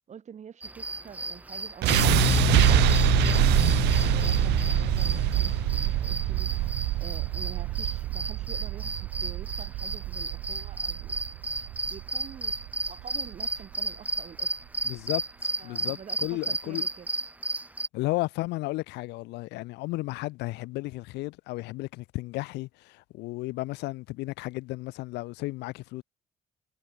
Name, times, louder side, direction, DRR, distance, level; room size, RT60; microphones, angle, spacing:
voice 1, 0.1-2.7 3.0-3.8 4.1-6.7 7.0-11.2 11.9-12.6 12.9-14.6 15.6-17.1, right 8 dB, 45° right, 4.8 m, -47 dB
sound 1, 0.6-17.9, right 2 dB, 10° right, 0.6 m, -34 dB
sound 2, 1.8-13.9, right 19 dB, 85° right, 1.1 m, -25 dB
sound 3, 1.9-7.1, left 13 dB, 65° left, 2.6 m, -29 dB
voice 2, 14.8-16.8 17.9-26.0, left 21 dB, 90° left, 1.0 m, -34 dB
cardioid pair, 110°, 17 cm